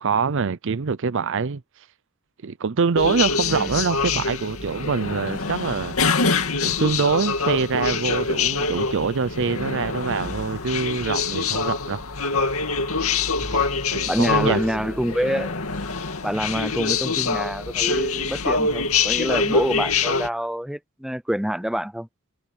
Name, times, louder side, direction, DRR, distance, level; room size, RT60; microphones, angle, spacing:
voice 1, 0.0-1.6 2.4-6.0 6.6-12.0 13.9-14.9, right 5 dB, 60° right, 0.6 m, -24 dB
sound 1, 3.0-20.3, left 4 dB, 70° left, 2.5 m, -25 dB
voice 2, 14.0-15.5 16.2-22.1, equal, ahead, 0.6 m, -26 dB
head